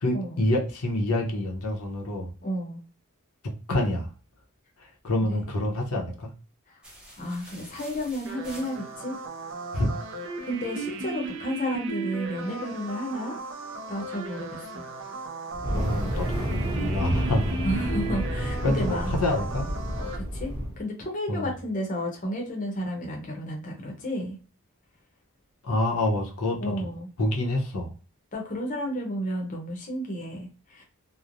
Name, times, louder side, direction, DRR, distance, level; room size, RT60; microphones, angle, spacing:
voice 1, 0.0-2.3 3.7-4.1 4.8-6.3 9.7-9.9 15.7-17.5 18.6-19.7 21.3-21.5 25.6-26.9 27.2-27.9, left 1 dB, 85° left, 0 dB, 0.7 m, -27 dB
voice 2, 2.4-2.8 5.3-5.4 6.7-6.8 7.2-9.2 10.4-13.4 13.9-14.8 17.6-19.1 20.0-24.4 26.6-27.1 28.3-30.8, equal, 35° left, 0 dB, 0.7 m, -32 dB
sound 1, 6.8-9.2, equal, 5° right, 0.5 m, -47 dB
sound 2, 8.3-20.2, right 2 dB, 60° right, 0.5 m, -36 dB
Fire, 15.5-20.8, equal, 20° right, 0.9 m, -30 dB
3.0 x 2.0 x 2.4 m, 0.37 s
head